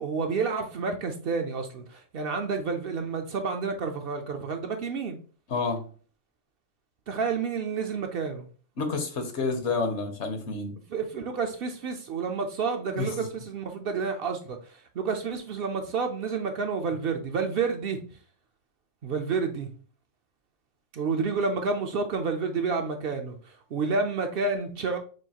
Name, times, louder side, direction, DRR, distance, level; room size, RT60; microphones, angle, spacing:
voice 1, 0.0-5.2 7.1-8.5 10.9-18.0 19.0-19.7 20.9-25.0, right 5 dB, 60° right, 0.7 m, -30 dB
voice 2, 5.5-5.8 8.8-10.7 13.0-13.1, left 4 dB, 70° left, 1.2 m, -29 dB
6.2 x 2.5 x 2.8 m
omnidirectional pair, 1.2 m